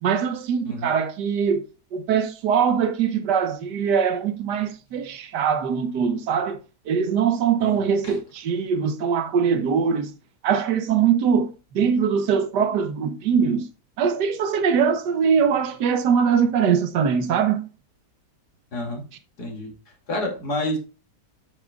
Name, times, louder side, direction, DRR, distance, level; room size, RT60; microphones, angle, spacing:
voice 1, 0.0-6.6 6.9-10.1 10.4-13.7 14.0-17.7, right 7 dB, 80° right, 1.6 m, -22 dB
voice 2, 7.6-8.2 18.7-19.0 19.4-19.7 20.1-20.8, left 1 dB, 70° left, 3.0 m, -29 dB
9.3 x 7.6 x 2.3 m
omnidirectional pair, 1.8 m